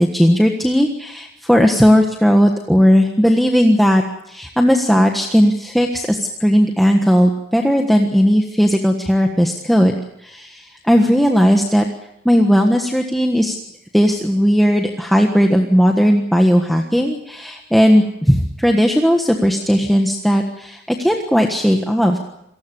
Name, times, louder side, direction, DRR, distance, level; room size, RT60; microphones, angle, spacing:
voice 1, 0.0-11.9 12.2-13.6 13.9-22.2, equal, ahead, 2 dB, 1.4 m, -16 dB
28.0 x 19.0 x 7.0 m, 0.79 s
head